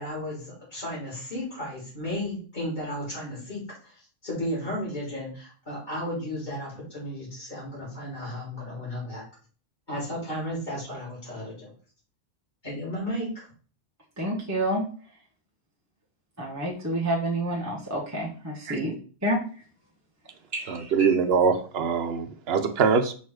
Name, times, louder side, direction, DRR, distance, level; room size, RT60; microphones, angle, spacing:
voice 1, 0.0-3.9 4.2-9.2 9.9-11.7 12.6-13.5, equal, 35° left, -7 dB, 3.7 m, -34 dB
voice 2, 14.2-14.8 16.4-18.9 19.2-19.4 20.5-21.1, right 1 dB, 15° right, -4 dB, 1.2 m, -28 dB
voice 3, 20.7-23.1, right 5 dB, 60° right, 7 dB, 1.0 m, -23 dB
5.6 x 4.1 x 4.8 m, 0.41 s
omnidirectional pair, 1.3 m